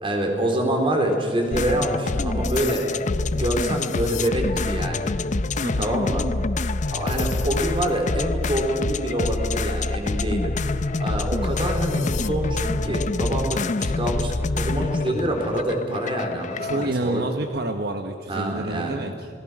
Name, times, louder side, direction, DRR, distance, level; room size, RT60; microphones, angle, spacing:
voice 1, 0.0-2.9 3.3-5.2 5.8-6.3 6.9-10.6 11.0-17.2 18.3-19.1, right 1 dB, 30° right, 2 dB, 3.8 m, -26 dB
sound 1, 1.5-16.9, left 3 dB, 45° left, 0.6 m, -26 dB
voice 2, 5.6-6.0 16.6-19.3, right 2 dB, 65° right, 6 dB, 1.1 m, -28 dB
28.5 x 19.0 x 6.2 m, 2.2 s
head